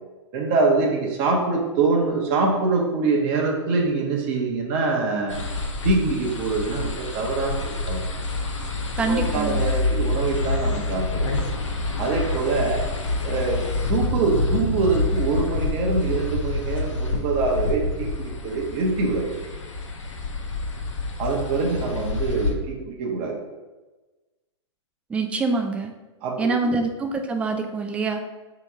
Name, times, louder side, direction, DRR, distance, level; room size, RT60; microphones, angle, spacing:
voice 1, 0.3-5.4 5.8-8.0 9.0-11.4 12.0-12.8 13.2-13.6 13.9-19.4 21.2-23.4 26.2-26.7, right 3 dB, 40° right, -1 dB, 0.8 m, -24 dB
sound 1, 5.3-22.5, left 3 dB, 80° left, 0.8 m, -27 dB
voice 2, 9.0-9.7 25.1-25.9 26.4-28.2, right 3 dB, 10° right, 4 dB, 0.3 m, -25 dB
3.4 x 3.0 x 4.7 m, 1.2 s
hypercardioid pair, 120°, 15 cm